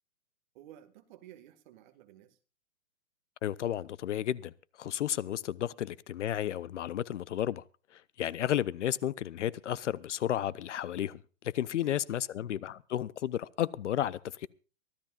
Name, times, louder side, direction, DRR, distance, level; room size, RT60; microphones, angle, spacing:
voice 1, 0.5-2.4 11.7-12.0, right 12 dB, 35° right, 1.8 m, -54 dB
voice 2, 3.4-4.5 4.8-7.6 7.9-11.2 11.4-14.5, left 11 dB, 55° left, 0.7 m, -32 dB
24.0 x 15.0 x 2.5 m
hypercardioid pair, 160°, 43 cm